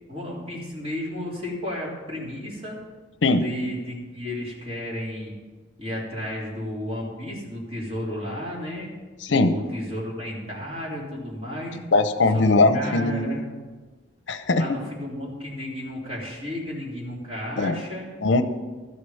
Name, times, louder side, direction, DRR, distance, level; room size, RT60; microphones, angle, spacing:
voice 1, 0.1-2.8 3.4-5.3 5.8-8.9 9.3-11.8 12.3-12.4 12.7-13.5 14.5-18.2, left 1 dB, 30° right, -4 dB, 3.2 m, -33 dB
voice 2, 9.2-9.5 11.9-13.3 14.3-14.6 17.6-17.8 18.2-18.4, left 3 dB, 70° left, 9 dB, 0.7 m, -20 dB
12.5 x 6.6 x 7.0 m, 1.4 s
head